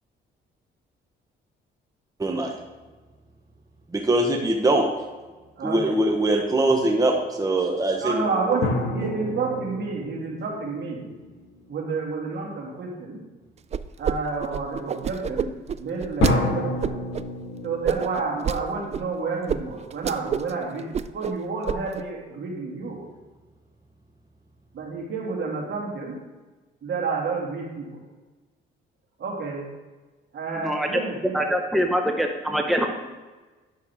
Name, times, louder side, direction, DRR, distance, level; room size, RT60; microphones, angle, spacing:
voice 1, 2.2-2.5 3.9-4.9 5.6-7.1 7.4-8.2, right 1 dB, 15° right, 1 dB, 1.0 m, -22 dB
voice 2, 5.6-5.9 8.0-11.0 11.7-13.2 14.0-15.5 15.8-17.0 17.6-20.9 21.1-23.0 24.7-26.2 26.8-28.0 29.2-29.7 30.3-31.4, right 4 dB, 65° right, -2 dB, 2.4 m, -29 dB
sound 1, 8.6-12.0 16.2-19.5, left 2 dB, 75° left, 1.5 m, -30 dB
sound 2, 13.7-14.1 14.4-16.3 16.8-17.2 17.8-18.6 18.9-19.0 19.5-19.6 19.9-20.5 20.8-21.3 21.7-22.0, right 8 dB, 35° right, 0.3 m, -27 dB
voice 3, 30.6-31.0 31.3-33.0, equal, ahead, 3 dB, 0.8 m, -24 dB
9.8 x 6.5 x 3.6 m, 1.3 s
cardioid pair, 90°, 20 cm